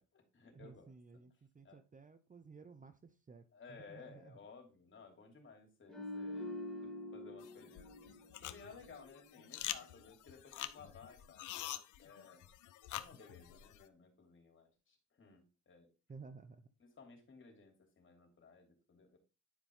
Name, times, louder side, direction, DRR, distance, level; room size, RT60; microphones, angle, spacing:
voice 1, 0.0-0.9 1.6-1.8 3.5-6.5 6.8-12.5 12.9-15.9 16.8-19.2, left 4 dB, 40° left, 3.0 m, -58 dB
voice 2, 0.5-4.4 16.1-16.6, right 4 dB, 25° right, 0.8 m, -55 dB
sound 1, 5.9-9.2 9.5-9.7, left 1 dB, ahead, 2.6 m, -46 dB
sound 2, 7.4-13.9, left 13 dB, 80° left, 0.7 m, -47 dB
10.5 x 5.3 x 3.5 m
cardioid pair, 90°, 30 cm